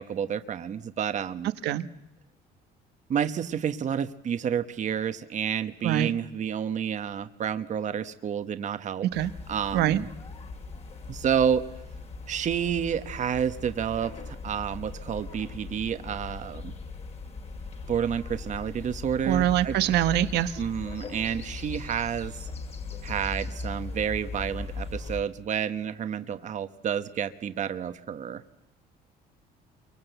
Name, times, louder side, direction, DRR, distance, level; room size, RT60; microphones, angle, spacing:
voice 1, 0.0-1.5 3.1-9.1 9.5-10.1 11.1-11.6 12.3-16.7 17.9-19.8 20.6-22.4 23.0-28.4, right 8 dB, 45° right, 10 dB, 1.1 m, -30 dB
sound 1, 9.1-25.2, left 3 dB, 40° left, 2.8 m, -39 dB
voice 2, 19.3-20.5, right 12 dB, 80° right, 12 dB, 1.1 m, -24 dB
28.0 x 24.0 x 8.0 m, 0.87 s
cardioid pair, 110°, 17 cm